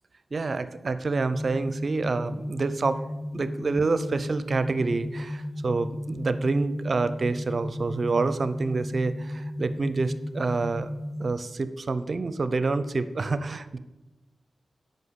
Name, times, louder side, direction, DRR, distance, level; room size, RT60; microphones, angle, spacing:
voice 1, 0.3-3.0 3.3-10.9 11.2-13.8, right 3 dB, 55° right, 13 dB, 0.6 m, -27 dB
sound 1, 1.3-11.3, left 1 dB, 10° right, 0.5 m, -35 dB
9.2 x 5.7 x 8.0 m, 1.1 s
cardioid pair, 45°, 0 cm